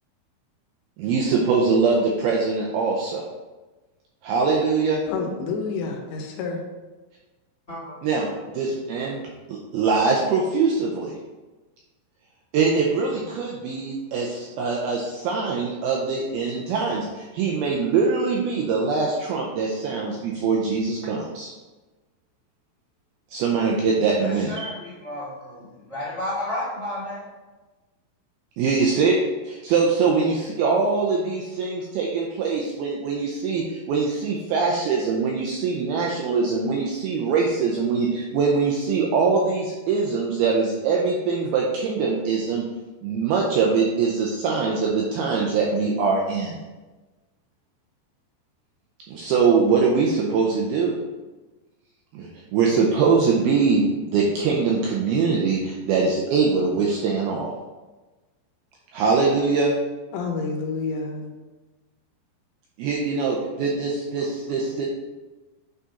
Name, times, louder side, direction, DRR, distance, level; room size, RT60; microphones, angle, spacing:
voice 1, 1.0-3.3 4.2-5.0 8.0-8.3 8.5-9.2 9.5-11.1 12.5-21.5 23.3-24.6 28.6-42.6 43.0-46.6 49.1-50.9 52.1-57.5 58.9-59.7 62.8-64.9, right 4 dB, 90° right, -2 dB, 2.2 m, -23 dB
voice 2, 5.1-6.6 60.1-61.3, left 4 dB, 80° left, 2 dB, 3.1 m, -29 dB
voice 3, 7.7-8.4 9.1-9.3 24.1-25.3 25.8-27.3 64.6-64.8, left 1 dB, 45° left, -9 dB, 0.9 m, -32 dB
8.4 x 3.7 x 4.1 m, 1.2 s
omnidirectional pair, 5.1 m